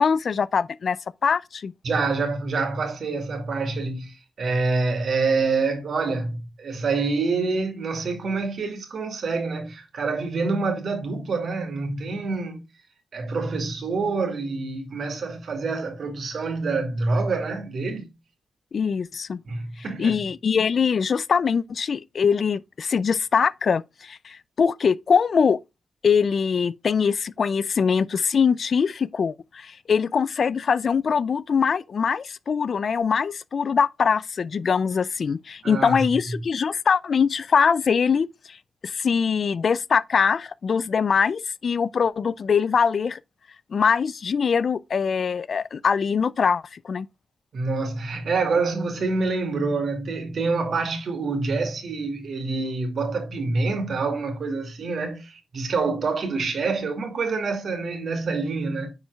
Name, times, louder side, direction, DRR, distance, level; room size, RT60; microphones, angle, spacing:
voice 1, 0.0-1.7 18.7-19.4 20.0-25.6 26.0-38.6 38.8-43.2 43.7-47.1, left 6 dB, 50° left, 0.3 m, -23 dB
voice 2, 1.8-12.6 13.1-18.1 19.4-20.1 35.6-36.0 47.5-58.9, right 3 dB, 60° right, 2.3 m, -26 dB
9.7 x 4.4 x 2.3 m
wide cardioid pair, 125°, 0 cm